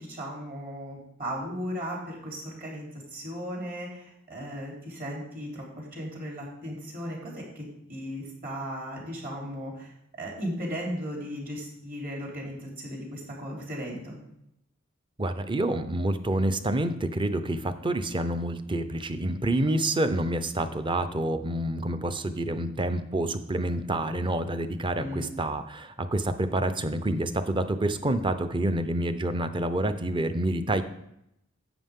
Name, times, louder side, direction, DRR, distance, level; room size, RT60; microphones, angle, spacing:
voice 1, 0.0-9.9 10.2-14.2 25.0-25.3, equal, 45° right, -2 dB, 3.5 m, -36 dB
voice 2, 15.2-30.8, right 1 dB, 25° right, 10 dB, 0.6 m, -28 dB
11.0 x 8.0 x 3.7 m, 0.79 s
head